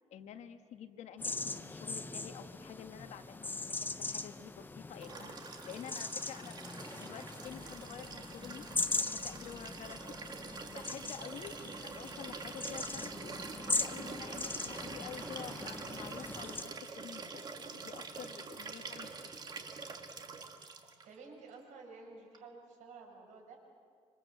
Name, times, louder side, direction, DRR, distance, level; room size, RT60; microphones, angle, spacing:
voice 1, 0.0-6.6 6.9-10.0 10.3-19.1, left 9 dB, 70° left, 8 dB, 1.5 m, -49 dB
sound 1, 1.2-16.6, left 3 dB, 15° left, 0.8 m, -40 dB
Liquid, 5.0-21.1 22.3-22.4, right 4 dB, 35° right, 2.0 m, -46 dB
voice 2, 21.0-23.6, right 4 dB, 85° right, 1 dB, 6.2 m, -52 dB
26.5 x 26.0 x 7.8 m, 2.1 s
cardioid pair, 145°, 12 cm